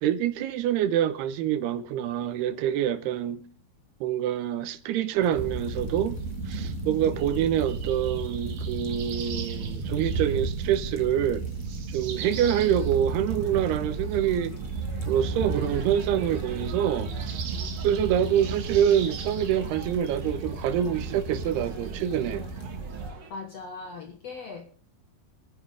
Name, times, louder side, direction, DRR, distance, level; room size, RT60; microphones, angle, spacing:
voice 1, 0.0-3.4 4.0-6.2 6.5-11.4 11.9-14.5 15.0-17.4 17.8-22.5, right 10 dB, 80° right, 3.0 m, -26 dB
sound 1, 5.2-22.6, left 2 dB, 40° left, 2.4 m, -48 dB
sound 2, 5.4-23.1, right 4 dB, 60° right, 3.2 m, -33 dB
sound 3, 12.2-23.3, right 4 dB, 45° right, 1.6 m, -46 dB
voice 2, 23.3-24.7, left 4 dB, 65° left, 1.7 m, -39 dB
29.0 x 10.0 x 3.4 m
omnidirectional pair, 4.7 m